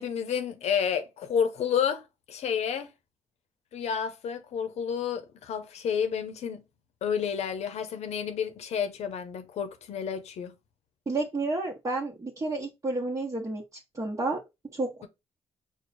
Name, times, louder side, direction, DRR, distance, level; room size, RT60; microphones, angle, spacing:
voice 1, 0.0-2.9 3.7-6.6 7.0-10.5, left 7 dB, 70° left, 0.8 m, -30 dB
voice 2, 11.1-13.6 13.9-14.4 14.7-14.9, right 2 dB, 30° right, 1.1 m, -30 dB
4.6 x 2.3 x 4.1 m
supercardioid pair, 65°, 11 cm